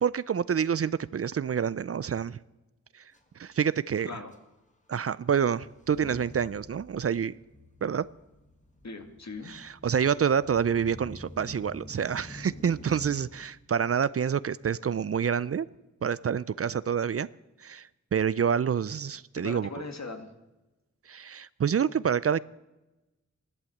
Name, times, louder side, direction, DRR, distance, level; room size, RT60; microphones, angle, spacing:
voice 1, 0.0-2.4 2.9-3.0 3.4-4.1 4.9-7.3 7.8-8.1 9.5-15.7 16.0-17.3 17.6-19.7 21.1-22.4, right 7 dB, 50° right, 0.4 m, -27 dB
Motor vehicle (road) / Engine starting / Accelerating revving vroom, 3.1-3.2 3.4-3.7 4.3-4.4 5.7-13.5, left 1 dB, 25° left, 1.9 m, -48 dB
voice 2, 4.0-4.3 8.8-9.5 19.4-20.3, left 3 dB, 60° left, 1.9 m, -39 dB
14.5 x 12.0 x 7.9 m
wide cardioid pair, 70°, 30 cm